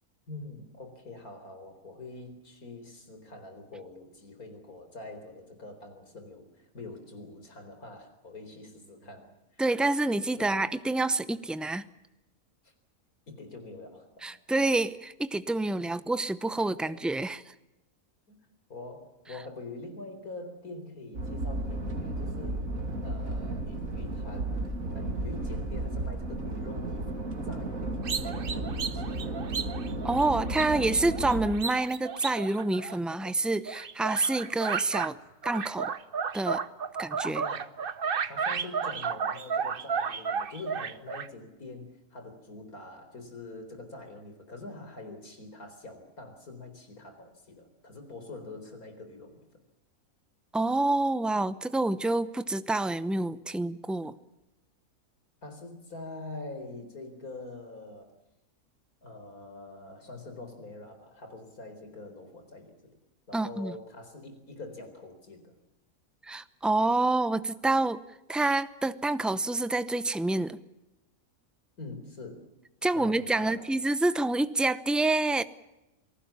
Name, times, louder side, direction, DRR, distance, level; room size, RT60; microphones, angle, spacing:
voice 1, 0.3-9.6 10.4-10.7 12.6-12.7 13.3-14.3 16.8-17.0 18.3-18.4 18.7-29.4 37.3-37.7 38.2-49.4 55.4-58.2 59.0-63.0 63.3-65.5 71.8-72.5 72.9-73.7, left 2 dB, 80° left, 6 dB, 4.7 m, -45 dB
voice 2, 9.6-11.9 14.2-17.4 30.0-35.2 35.4-35.9 36.3-36.6 37.0-37.4 50.5-54.1 63.3-63.7 66.2-68.0 68.3-70.6 72.8-75.4, right 2 dB, ahead, 13 dB, 0.4 m, -27 dB
sound 1, 21.1-31.5, right 2 dB, 65° right, 3.3 m, -33 dB
sound 2, 28.0-33.3 33.7-35.1 35.4-41.3, right 6 dB, 45° right, 1.0 m, -33 dB
28.0 x 19.5 x 7.2 m, 0.95 s
omnidirectional pair, 1.5 m